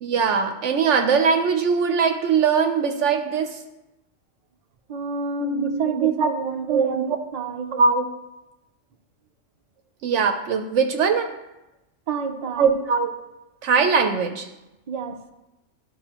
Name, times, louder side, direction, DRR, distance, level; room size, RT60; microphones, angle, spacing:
voice 1, 0.0-3.6 5.4-6.3 6.7-7.0 7.7-8.1 10.0-11.3 12.6-13.1 13.6-14.5, right 5 dB, 70° right, 5 dB, 0.9 m, -21 dB
voice 2, 4.9-7.8 12.1-12.7 14.9-15.2, right 6 dB, 50° right, 6 dB, 0.5 m, -28 dB
12.5 x 5.4 x 2.9 m, 0.99 s
omnidirectional pair, 1.3 m